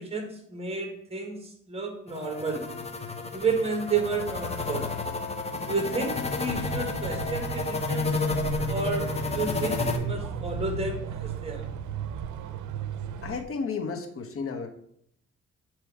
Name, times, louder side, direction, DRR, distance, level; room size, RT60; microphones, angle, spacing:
voice 1, 0.0-2.7 3.3-4.9 5.7-8.2 8.7-11.6, right 4 dB, 20° right, 4 dB, 1.5 m, -31 dB
sound 1, 2.1-10.0, left 3 dB, 20° left, 0.8 m, -31 dB
sound 2, 6.5-13.4, right 6 dB, 75° right, 0.6 m, -35 dB
voice 2, 13.2-14.7, left 5 dB, 45° left, 5 dB, 1.1 m, -32 dB
8.3 x 3.1 x 4.7 m, 0.70 s
cardioid pair, 90°, 30 cm